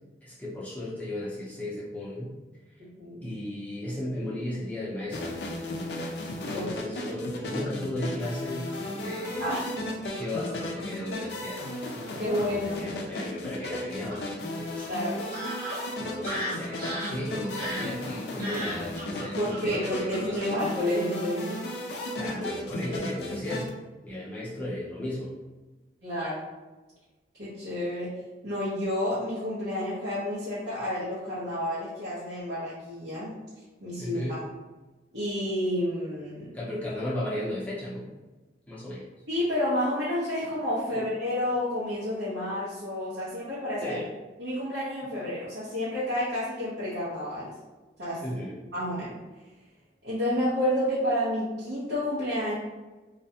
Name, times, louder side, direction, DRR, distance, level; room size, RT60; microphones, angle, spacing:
voice 1, 0.2-2.3 3.2-5.4 6.5-11.6 12.6-14.2 14.6-15.4 16.0-20.5 22.1-23.7 24.0-25.3 34.0-34.4 36.5-38.1 38.7-39.1 40.9-41.0 43.8-44.1 48.2-48.6, left 1 dB, 10° left, -7 dB, 0.6 m, -35 dB
voice 2, 3.0-3.3 6.5-6.8 9.4-9.7 12.2-12.8 14.9-15.2 19.4-21.6 26.0-26.5 27.4-28.2 28.4-33.4 33.8-34.4 35.1-36.5 39.3-44.0 44.4-47.5 48.0-48.2 48.7-49.2 50.0-52.5, left 1 dB, 70° right, -11 dB, 0.8 m, -30 dB
sound 1, 5.1-23.7, left 1 dB, 65° left, 0.4 m, -35 dB
Fowl / Bird vocalization bird call bird song, 8.7-9.4 10.2-10.8 11.6-11.7 12.1-12.5 14.1-14.2 14.8-14.9 15.3-21.2 21.5-21.7 22.1-22.3 22.6-22.9, equal, 50° right, 1.3 m, -38 dB
2.4 x 2.1 x 2.7 m, 1.2 s
head